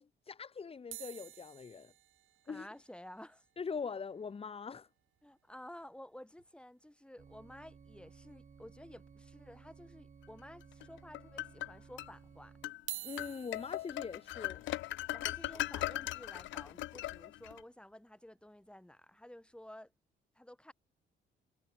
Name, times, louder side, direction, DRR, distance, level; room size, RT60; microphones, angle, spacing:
voice 1, 0.0-1.9 2.5-2.7 3.6-4.9 13.0-14.6, left 5 dB, 30° left, 1.1 m, -42 dB
sound 1, 0.9-5.3 5.6-5.7 5.8-6.0 6.4-6.5 7.9-8.0 8.6-9.2 9.7-9.8 10.6-10.7 12.7-18.8 19.4-19.6, right 14 dB, 85° right, 3.0 m, -52 dB
voice 2, 2.5-3.4 5.2-12.6 15.1-19.9 20.3-20.7, left 1 dB, 5° left, 6.2 m, -53 dB
sound 2, 7.2-12.7, right 6 dB, 40° right, 3.2 m, -58 dB
sound 3, 10.8-12.1 12.6-12.8 13.2-17.6, left 16 dB, 75° left, 0.4 m, -39 dB
cardioid pair, 90°, 20 cm